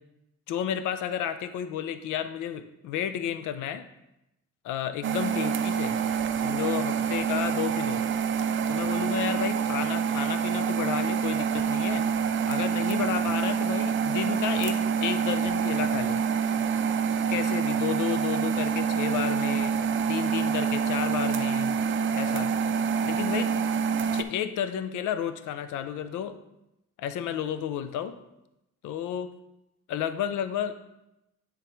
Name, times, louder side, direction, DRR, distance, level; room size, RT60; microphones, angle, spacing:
voice 1, 0.5-3.9 4.6-6.0 6.4-8.0 8.7-12.1 12.5-16.2 17.3-19.7 20.1-21.7 22.1-22.5 23.0-23.5 24.1-26.4 27.0-28.1 28.8-29.3 29.9-30.7, left 9 dB, 85° left, 11 dB, 0.6 m, -32 dB
sound 1, 5.0-24.2, right 6 dB, 40° right, 0.4 m, -26 dB
9.8 x 3.7 x 3.0 m, 0.88 s
cardioid pair, 90°, 30 cm